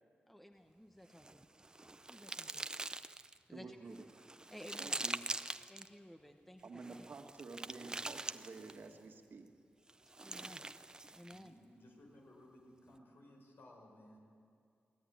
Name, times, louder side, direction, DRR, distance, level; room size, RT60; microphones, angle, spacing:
voice 1, 0.3-1.5 2.1-2.7 3.5-4.0 4.5-5.1 5.7-7.0 10.2-10.7 11.1-11.5, equal, 5° left, 5 dB, 1.1 m, -55 dB
sound 1, 1.1-3.4 3.9-5.9 6.8-8.9 9.9-11.5, right 2 dB, 20° right, 0.6 m, -44 dB
voice 2, 3.5-4.1 4.8-5.2 6.6-9.5, right 4 dB, 65° right, 4 dB, 1.8 m, -50 dB
voice 3, 11.3-14.2, left 1 dB, 65° left, 1 dB, 5.4 m, -59 dB
23.5 x 17.5 x 9.5 m, 2.3 s
wide cardioid pair, 120°, 4 cm